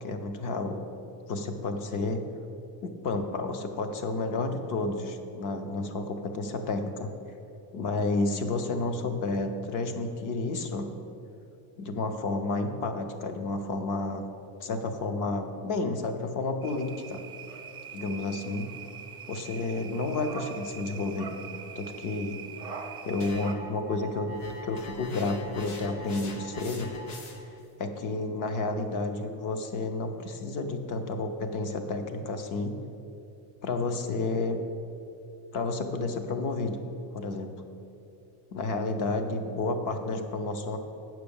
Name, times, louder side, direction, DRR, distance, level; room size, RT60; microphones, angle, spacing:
voice 1, 0.0-0.8 1.3-2.2 2.8-7.1 7.7-10.9 11.8-14.3 14.6-17.2 17.9-18.7 19.3-21.3 21.8-22.4 23.0-24.4 24.6-26.9 27.4-27.5 27.8-32.7 33.6-34.6 35.5-36.8 37.1-37.6 38.5-40.8, left 3 dB, 40° left, 7 dB, 0.8 m, -31 dB
sound 1, 16.6-23.5, right 6 dB, 10° right, 0.4 m, -43 dB
sound 2, 23.2-27.6, equal, 80° left, 1.5 m, -43 dB
8.6 x 5.9 x 7.0 m, 2.8 s
cardioid pair, 175°, 47 cm